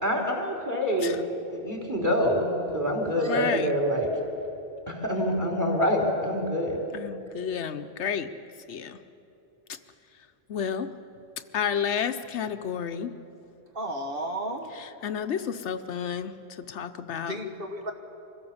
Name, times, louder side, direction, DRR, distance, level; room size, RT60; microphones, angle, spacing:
voice 1, 0.0-1.2 1.5-4.1 4.9-6.8, equal, 15° right, 1 dB, 3.4 m, -26 dB
voice 2, 3.3-3.7 6.9-8.3 8.7-9.0 9.7-9.8 10.5-10.9 11.5-13.1 14.8-17.3, left 7 dB, 75° left, 9 dB, 1.0 m, -31 dB
voice 3, 13.7-14.7 17.3-17.9, right 1 dB, 50° right, 3 dB, 1.6 m, -33 dB
25.0 x 16.0 x 7.2 m, 2.9 s
omnidirectional pair, 1.2 m